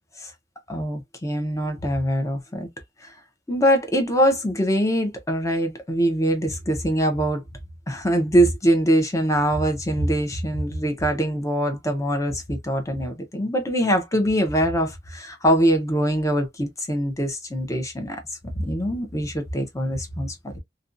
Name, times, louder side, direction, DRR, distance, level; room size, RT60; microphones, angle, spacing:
voice 1, 0.7-2.7 3.0-3.1 3.5-7.4 7.9-18.2 18.5-20.6, equal, 20° left, 0.7 m, -23 dB
2.5 x 2.2 x 2.5 m
head